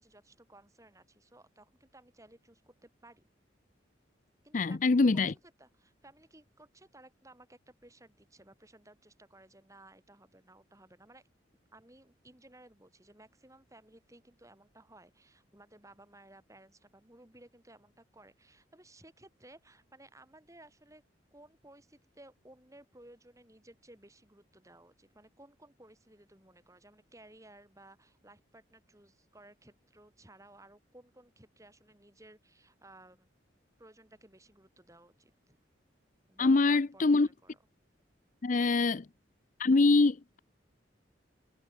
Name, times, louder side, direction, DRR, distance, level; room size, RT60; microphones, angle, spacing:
voice 1, 0.0-3.3 4.4-11.2 11.7-21.0 21.3-33.3 33.8-35.6 36.3-37.6 38.5-38.8, right 1 dB, 15° right, 5.5 m, -58 dB
voice 2, 4.5-5.3 36.4-37.3 38.4-39.0 39.6-40.4, left 3 dB, 45° left, 0.5 m, -24 dB
head